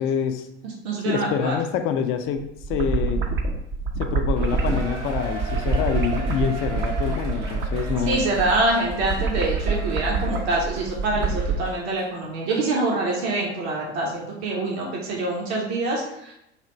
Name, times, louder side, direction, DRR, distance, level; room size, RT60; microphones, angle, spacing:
voice 1, 0.0-0.5 1.0-3.2 4.0-8.2, left 8 dB, 35° left, 7 dB, 0.4 m, -26 dB
voice 2, 0.6-1.5 8.0-16.3, right 2 dB, 65° right, -2 dB, 1.0 m, -25 dB
sound 1, 2.4-11.6, right 3 dB, 35° right, 0.6 m, -26 dB
Cheering, 4.4-12.1 12.5-12.6 13.3-13.4, right 3 dB, 85° right, 0.7 m, -38 dB
3.3 x 2.4 x 4.2 m, 0.80 s
figure-of-eight pair, 65°, 35 cm